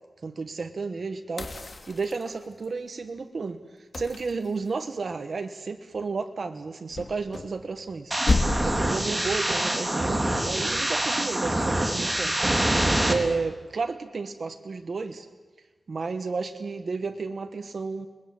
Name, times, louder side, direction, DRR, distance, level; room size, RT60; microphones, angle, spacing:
voice 1, 0.2-1.5 1.9-3.6 3.9-8.1 8.6-12.4 13.1-15.3 15.9-18.1, right 4 dB, 70° right, 7 dB, 1.4 m, -32 dB
sound 1, 1.4-2.7 3.9-5.1 6.9-8.0 8.3-8.9 11.3-11.7, left 3 dB, 55° left, 2.6 m, -30 dB
sound 2, 8.1-13.1, right 1 dB, 25° right, 3.5 m, -25 dB
29.0 x 21.0 x 7.8 m, 1.3 s
wide cardioid pair, 80°, 0 cm